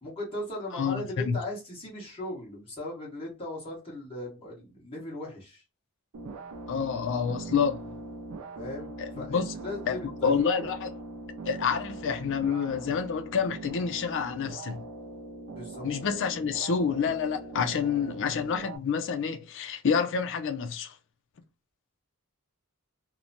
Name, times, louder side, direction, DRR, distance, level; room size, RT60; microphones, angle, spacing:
voice 1, 0.0-5.6 8.5-8.9 9.2-10.7 15.5-15.8, left 1 dB, 25° left, 1.4 m, -38 dB
voice 2, 0.7-1.4 6.7-7.8 9.0-9.5 9.9-10.0 10.2-10.9 11.5-14.8 15.8-20.9, left 6 dB, 55° left, 0.4 m, -28 dB
sound 1, 6.1-18.8, right 2 dB, 75° right, 0.4 m, -41 dB
3.0 x 2.1 x 2.6 m
head